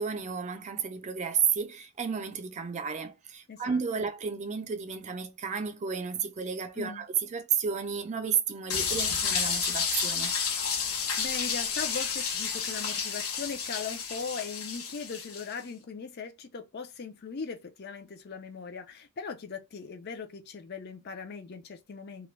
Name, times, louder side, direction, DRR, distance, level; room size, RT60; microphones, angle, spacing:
voice 1, 0.0-10.4, right 6 dB, 35° right, 0.4 m, -32 dB
voice 2, 3.5-4.1 6.8-7.0 11.2-22.3, left 5 dB, 50° left, 0.5 m, -39 dB
sound 1, 8.7-15.5, left 6 dB, 85° left, 0.8 m, -31 dB
2.4 x 2.1 x 3.1 m
head